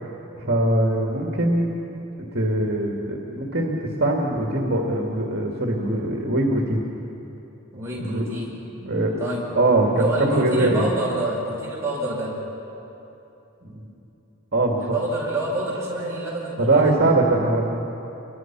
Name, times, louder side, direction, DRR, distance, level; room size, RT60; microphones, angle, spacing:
voice 1, 0.4-1.7 2.3-6.8 8.0-8.2 8.8-9.1 9.6-10.9 13.6-13.9 14.5-14.8 16.6-17.6, right 2 dB, 50° right, -1 dB, 2.2 m, -22 dB
voice 2, 7.7-8.5 9.2-9.4 10.0-12.4 14.8-16.8, right 1 dB, 15° right, -7 dB, 7.7 m, -27 dB
29.5 x 23.5 x 6.1 m, 3.0 s
head